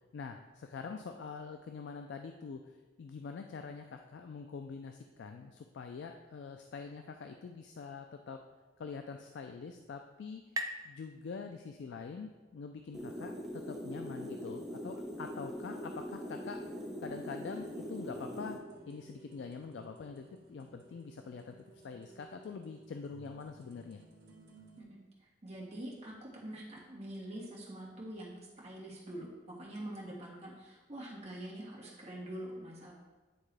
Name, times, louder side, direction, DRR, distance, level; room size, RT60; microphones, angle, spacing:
voice 1, 0.1-8.4 8.8-10.4 10.8-16.6 17.0-18.6 18.9-24.0, left 5 dB, 65° left, 5 dB, 0.3 m, -45 dB
sound 1, 9.1-12.5, right 1 dB, 20° right, 0.3 m, -45 dB
sound 2, 12.9-18.6, equal, ahead, 0.8 m, -42 dB
sound 3, 16.6-24.8, right 2 dB, 65° right, 1.5 m, -58 dB
voice 2, 24.8-32.9, right 1 dB, 35° right, -5 dB, 1.6 m, -45 dB
9.4 x 3.7 x 3.3 m, 1.3 s
head